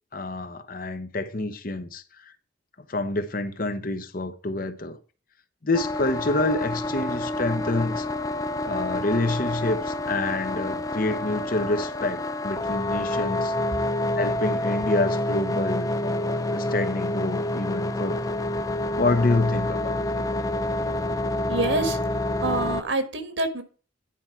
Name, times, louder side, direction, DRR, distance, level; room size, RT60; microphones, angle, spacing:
voice 1, 0.1-2.0 2.9-5.0 5.6-8.1 8.6-13.5 14.2-18.4 19.0-20.2, left 2 dB, 50° left, 0.9 m, -27 dB
sound 1, 5.7-22.8, left 1 dB, 20° left, 0.4 m, -28 dB
voice 2, 21.5-23.6, right 2 dB, 75° right, 1.6 m, -27 dB
10.5 x 4.5 x 5.8 m
head